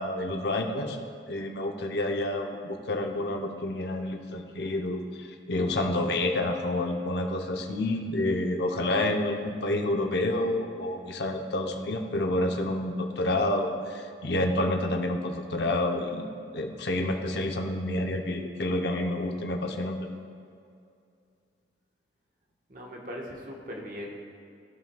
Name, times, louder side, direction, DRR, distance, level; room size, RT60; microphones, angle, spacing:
voice 1, 0.0-16.3 16.5-20.1, left 1 dB, 65° left, 4 dB, 0.7 m, -29 dB
voice 2, 22.7-24.2, equal, 45° right, -1 dB, 1.2 m, -39 dB
15.0 x 5.8 x 2.3 m, 2.4 s
head